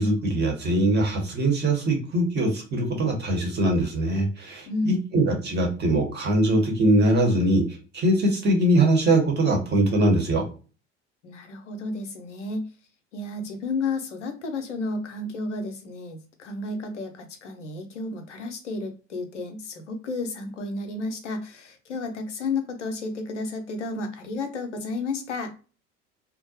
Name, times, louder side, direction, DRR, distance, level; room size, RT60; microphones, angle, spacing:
voice 1, 0.0-10.4, right 1 dB, 30° right, 1 dB, 1.0 m, -22 dB
voice 2, 4.7-5.0 11.2-12.7 13.1-25.5, left 3 dB, 75° left, 6 dB, 0.7 m, -32 dB
2.5 x 2.1 x 2.7 m, 0.35 s
figure-of-eight pair, 65°, 36 cm